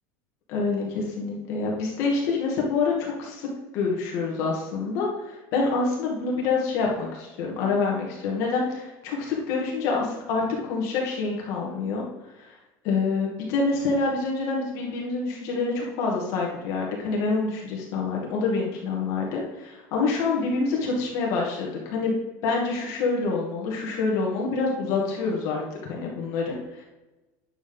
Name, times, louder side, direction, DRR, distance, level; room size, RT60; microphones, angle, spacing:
voice 1, 0.5-3.5 3.7-12.0 12.4-12.5 12.8-25.6 25.9-26.8, left 4 dB, 45° left, -2 dB, 2.1 m, -27 dB
9.1 x 7.0 x 3.9 m, 1.1 s
cardioid pair, 180°, 7 cm